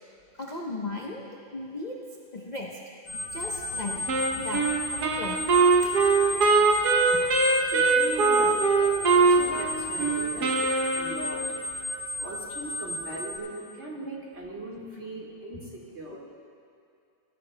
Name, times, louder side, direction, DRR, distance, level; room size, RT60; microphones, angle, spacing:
voice 1, 0.4-2.0 2.3-2.8 3.1-4.0 4.3-4.7 4.9-5.4 5.8-6.0 7.1-7.2 10.3-10.4 14.9-15.0 15.5-15.6, left 2 dB, 55° left, -2 dB, 0.4 m, -37 dB
sound 1, 3.1-13.4, left 1 dB, 75° left, 2.7 m, -35 dB
Wind instrument woodwind instrument, 4.1-11.6, right 4 dB, 60° right, 1.3 m, -22 dB
voice 2, 7.7-8.6 9.1-10.6 11.0-11.4 12.2-16.2, right 2 dB, 35° right, -4 dB, 1.9 m, -39 dB
22.5 x 13.0 x 2.2 m, 2.4 s
omnidirectional pair, 2.2 m